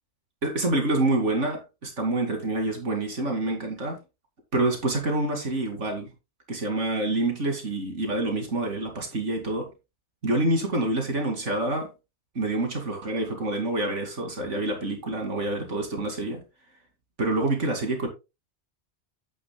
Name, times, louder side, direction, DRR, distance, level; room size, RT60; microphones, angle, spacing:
voice 1, 0.4-4.0 4.5-6.1 6.5-9.7 10.2-11.9 12.3-16.4 17.2-18.1, right 2 dB, 85° right, 2.8 m, -27 dB
10.5 x 9.2 x 2.2 m
omnidirectional pair, 1.2 m